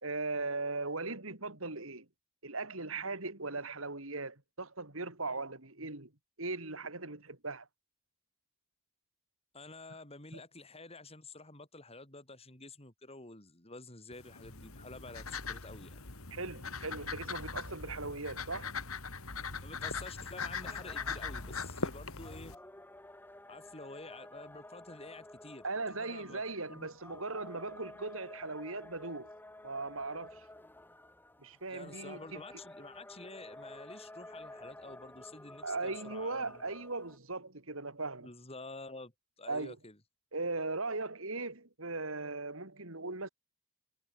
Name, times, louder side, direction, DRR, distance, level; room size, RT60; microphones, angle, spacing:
voice 1, 0.0-2.1 2.4-6.1 6.4-7.7 10.3-10.4 16.3-18.7 25.6-29.3 29.6-30.4 31.4-32.4 35.6-38.3 39.5-39.8 40.3-43.3, right 3 dB, 70° right, 3.9 m, -38 dB
voice 2, 9.5-16.0 19.6-22.6 23.5-26.4 26.7-26.9 31.7-36.6 38.2-39.1 39.4-40.0, left 3 dB, 30° left, 4.9 m, -49 dB
sound 1, 14.1-22.6, left 5 dB, 90° left, 3.1 m, -40 dB
sound 2, 20.6-37.2, left 1 dB, 10° left, 2.6 m, -52 dB
head